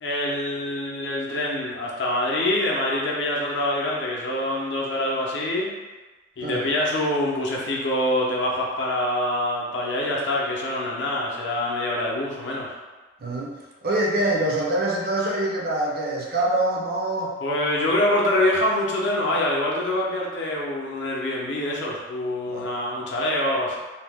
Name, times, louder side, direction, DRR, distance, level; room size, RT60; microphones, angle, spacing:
voice 1, 0.0-5.7 6.4-12.7 17.4-23.8, left 1 dB, 65° left, -3 dB, 0.6 m, -25 dB
voice 2, 13.2-13.5 13.8-17.3 22.5-22.7, right 1 dB, 50° right, -2 dB, 0.5 m, -25 dB
2.7 x 2.0 x 3.4 m, 1.2 s
head